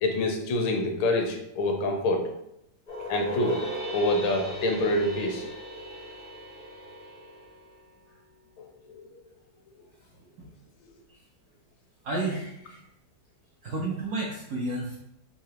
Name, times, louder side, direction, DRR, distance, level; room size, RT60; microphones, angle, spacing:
voice 1, 0.0-2.3 3.1-3.6 3.9-5.4 8.6-9.0, left 2 dB, 80° left, 3 dB, 1.4 m, -26 dB
sound 1, 2.9-8.1, equal, 60° left, 0.5 m, -37 dB
voice 2, 12.0-12.8 13.6-15.0, right 2 dB, 75° right, -3 dB, 0.8 m, -31 dB
3.9 x 2.7 x 2.8 m, 0.81 s
omnidirectional pair, 2.1 m